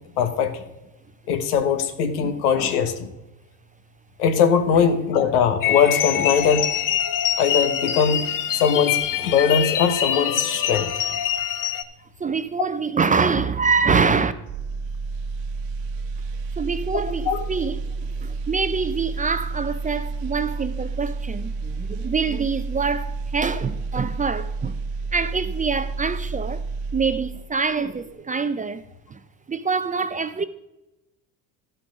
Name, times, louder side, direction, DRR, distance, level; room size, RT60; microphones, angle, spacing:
voice 1, 0.2-0.6 1.3-3.1 4.2-6.6 7.4-8.2 8.5-10.9 17.2-17.4, left 7 dB, 90° left, 1.2 m, -20 dB
sound 1, 5.6-11.8, left 9 dB, 45° left, 0.8 m, -24 dB
voice 2, 12.2-14.3 16.6-24.8 25.1-26.6 26.9-28.8 29.1-29.2 29.5-30.4, right 5 dB, 20° right, 0.5 m, -25 dB
sound 2, 14.5-27.6 27.9-28.1, right 4 dB, 70° right, 1.2 m, -30 dB
12.5 x 6.0 x 5.1 m
supercardioid pair, 85°, 44 cm